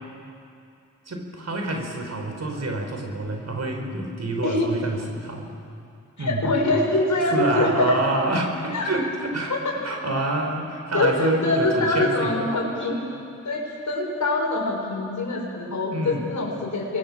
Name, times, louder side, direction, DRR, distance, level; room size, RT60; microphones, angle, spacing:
voice 1, 1.1-5.5 6.2-6.5 7.3-9.5 9.8-12.5 15.9-16.3, right 2 dB, 55° right, 3 dB, 5.0 m, -27 dB
voice 2, 6.2-8.1 8.7-8.9 9.5-9.7 10.9-13.0 13.4-17.0, left 2 dB, 65° left, -1 dB, 6.7 m, -24 dB
27.5 x 22.5 x 7.7 m, 2.5 s
cardioid pair, 45°, 31 cm